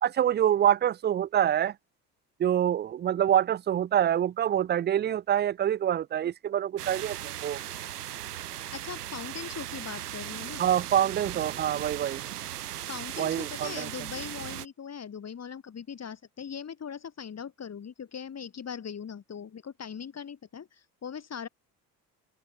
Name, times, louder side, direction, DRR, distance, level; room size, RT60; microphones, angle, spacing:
voice 1, 0.0-1.7 2.4-7.6 10.6-12.2 13.2-13.9, right 10 dB, 20° right, 0.6 m, -26 dB
sound 1, 6.8-14.7, right 12 dB, 75° right, 4.6 m, -38 dB
voice 2, 8.7-10.6 12.6-21.5, left 7 dB, 35° left, 4.8 m, -40 dB
figure-of-eight pair, 60°, 47 cm